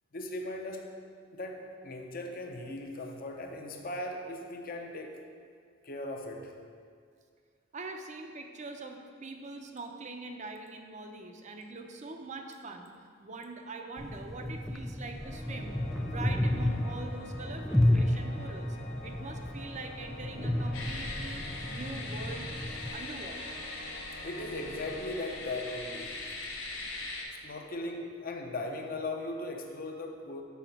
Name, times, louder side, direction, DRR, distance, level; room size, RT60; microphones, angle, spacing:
voice 1, 0.1-0.9 1.3-5.2 5.8-6.5 24.2-26.3 27.4-30.4, left 2 dB, 50° left, 3 dB, 0.8 m, -38 dB
voice 2, 7.7-12.9 13.2-18.7 19.0-22.5 22.9-23.6, right 3 dB, 40° right, 4 dB, 0.6 m, -43 dB
sound 1, 14.0-22.9, left 1 dB, 5° left, 0.3 m, -32 dB
Organ, 15.2-26.0, left 2 dB, 65° left, 1.5 m, -48 dB
sound 2, 20.7-27.2, left 2 dB, 85° left, 1.2 m, -41 dB
7.1 x 5.0 x 5.9 m, 2.1 s
head